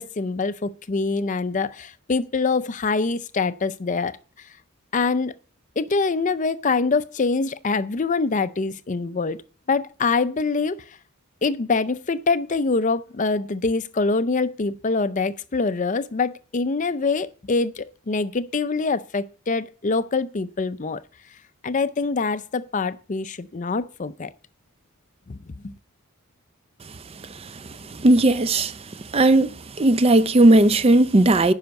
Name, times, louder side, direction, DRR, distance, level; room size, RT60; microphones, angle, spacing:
voice 1, 0.0-4.2 4.9-5.3 5.8-9.4 9.7-10.8 11.4-21.0 21.6-24.3 25.3-25.4 25.6-25.7, left 4 dB, 35° left, 0.5 m, -24 dB
voice 2, 27.9-28.7 29.1-31.5, right 2 dB, 25° right, 0.4 m, -16 dB
10.5 x 5.7 x 8.0 m
head